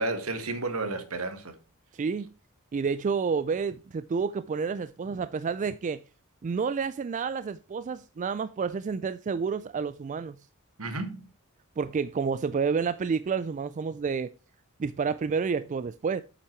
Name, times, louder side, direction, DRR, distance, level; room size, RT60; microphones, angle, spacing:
voice 1, 0.0-1.6 10.8-11.3, right 2 dB, 75° right, 1.6 m, -32 dB
voice 2, 1.9-2.3 2.7-6.0 6.4-10.4 11.8-14.3 14.8-16.2, right 5 dB, 35° right, 0.3 m, -29 dB
8.3 x 5.9 x 4.4 m
head